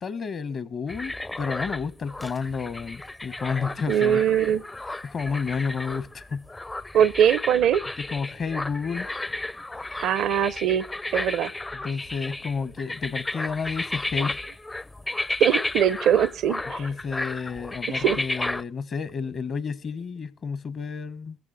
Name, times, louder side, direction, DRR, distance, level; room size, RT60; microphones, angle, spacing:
voice 1, 0.0-4.2 5.0-6.5 8.0-9.1 11.7-14.4 16.8-21.4, left 5 dB, 50° left, 1.1 m, -31 dB
sound 1, 0.9-18.6, left 2 dB, 20° left, 0.5 m, -33 dB
voice 2, 3.9-4.6 6.9-7.8 10.0-10.8 11.1-11.5 15.4-16.8 17.9-18.2, right 9 dB, 65° right, 0.6 m, -21 dB
20.5 x 14.5 x 2.6 m
hypercardioid pair, 55°, 0 cm